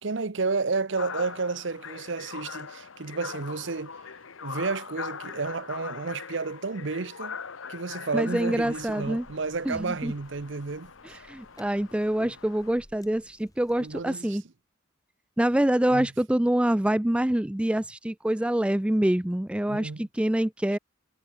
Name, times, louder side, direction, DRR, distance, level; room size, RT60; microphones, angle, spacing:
voice 1, 0.0-3.9 4.4-7.4 7.7-11.2 12.2-12.3 13.8-14.4 15.9-16.1 19.7-20.1, right 4 dB, 65° right, 0.8 m, -31 dB
sound 1, 1.0-12.7, left 6 dB, 80° left, 1.1 m, -41 dB
voice 2, 8.1-9.3 9.7-10.1 11.0-14.4 15.4-20.8, right 1 dB, 5° right, 0.3 m, -26 dB
sound 2, 8.5-14.2, left 1 dB, 20° left, 5.6 m, -58 dB
head